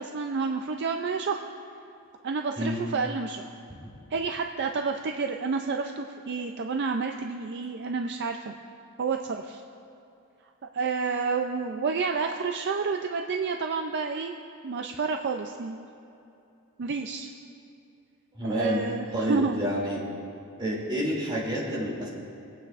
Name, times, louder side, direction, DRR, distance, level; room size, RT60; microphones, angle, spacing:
voice 1, 0.0-1.4 2.2-3.5 4.1-8.5 9.0-9.6 10.6-15.8 16.8-17.3 18.5-19.6, right 4 dB, 50° right, 4 dB, 0.4 m, -30 dB
voice 2, 18.3-18.8 19.1-20.0 20.6-22.1, equal, 20° right, -6 dB, 2.7 m, -28 dB
24.0 x 8.6 x 2.5 m, 2.7 s
head